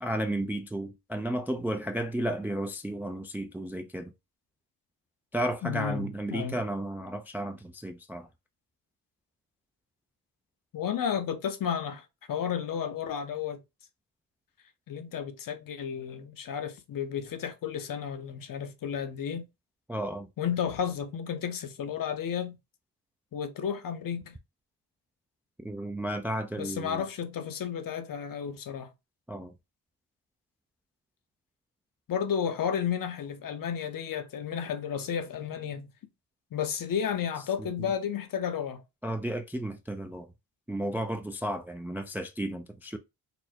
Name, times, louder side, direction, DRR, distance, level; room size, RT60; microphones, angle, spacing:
voice 1, 0.0-4.1 5.3-8.3 19.9-20.3 25.6-27.0 29.3-29.5 39.0-40.3 40.7-43.0, right 1 dB, 5° right, 0.4 m, -33 dB
voice 2, 5.6-6.6 10.7-13.6 14.9-19.5 20.4-22.6 23.3-24.4 26.6-28.9 32.1-35.9 36.5-38.8, left 8 dB, 50° left, 0.8 m, -32 dB
4.2 x 2.0 x 2.7 m
supercardioid pair, 60°, 43 cm